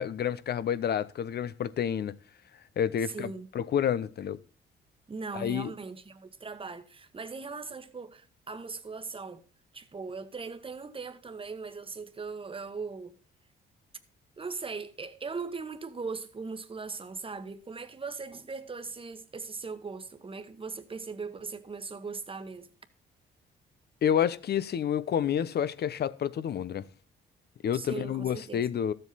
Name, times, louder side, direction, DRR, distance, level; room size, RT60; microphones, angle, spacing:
voice 1, 0.0-2.1 2.8-3.3 3.5-4.4 5.3-5.7 24.0-26.9 27.6-28.9, left 9 dB, 55° left, 0.8 m, -29 dB
voice 2, 3.0-3.5 5.1-9.4 9.7-13.2 14.4-22.7 27.7-28.7, right 4 dB, 25° right, 1.3 m, -39 dB
13.5 x 7.8 x 4.1 m
cardioid pair, 90°, 20 cm